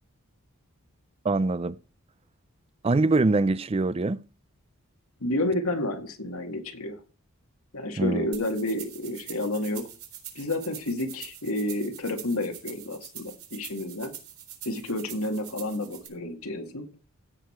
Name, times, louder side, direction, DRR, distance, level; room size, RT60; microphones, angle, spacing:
voice 1, 1.2-1.8 2.8-4.2 8.0-8.3, right 3 dB, 25° right, 0.4 m, -23 dB
voice 2, 5.2-7.0 7.7-9.8 10.4-14.1 14.6-16.9, left 1 dB, 80° left, 2.1 m, -30 dB
sound 1, 8.3-16.1, right 10 dB, 70° right, 3.9 m, -44 dB
16.0 x 6.6 x 4.4 m
head